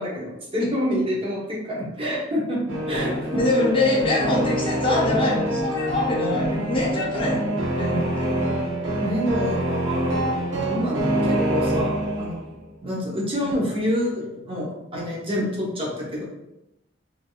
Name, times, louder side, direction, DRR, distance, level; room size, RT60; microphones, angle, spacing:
voice 1, 0.0-3.4 9.0-10.2 10.5-12.5 12.8-16.2, equal, 30° right, -4 dB, 0.8 m, -27 dB
sound 1, 2.7-12.5, right 1 dB, 75° right, 0.7 m, -25 dB
voice 2, 3.3-7.5 7.8-8.3 13.4-13.6, left 2 dB, 30° left, -4 dB, 0.6 m, -24 dB
3.2 x 2.6 x 2.3 m, 0.92 s
head